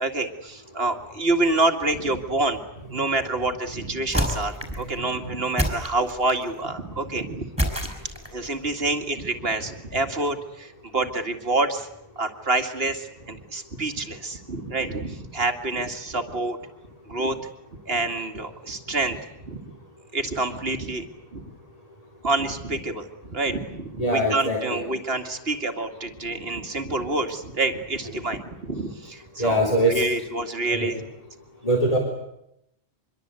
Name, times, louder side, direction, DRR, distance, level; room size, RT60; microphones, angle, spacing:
voice 1, 0.0-2.6 2.9-7.5 8.3-11.9 12.2-16.6 17.1-17.5 17.9-19.2 19.5-19.6 20.1-21.1 21.3-21.4 22.2-31.0, right 2 dB, 60° right, 6 dB, 2.3 m, -27 dB
sound 1, 4.1-4.9 5.6-6.5 7.6-8.5, equal, 5° right, 5.2 m, -27 dB
voice 2, 24.0-24.8 29.4-30.0 30.7-30.9 31.6-32.0, right 1 dB, 35° left, 0 dB, 3.6 m, -22 dB
25.0 x 23.0 x 8.2 m, 0.80 s
omnidirectional pair, 1.1 m